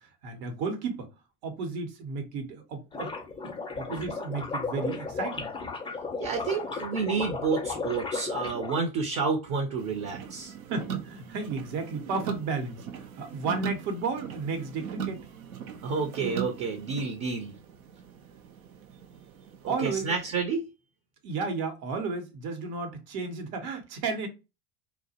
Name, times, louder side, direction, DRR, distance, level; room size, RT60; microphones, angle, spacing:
voice 1, 0.2-1.1 1.4-3.1 3.8-5.5 10.7-15.3 19.7-20.1 21.2-24.3, right 4 dB, 70° right, 0.9 m, -33 dB
sound 1, 2.9-8.8, left 4 dB, 15° left, 0.4 m, -34 dB
voice 2, 6.2-10.5 15.8-17.5 19.6-20.6, right 5 dB, 45° right, 0.6 m, -30 dB
sound 2, 9.8-20.4, right 8 dB, 90° right, 0.5 m, -40 dB
2.3 x 2.1 x 2.7 m
hypercardioid pair, 80°, 40 cm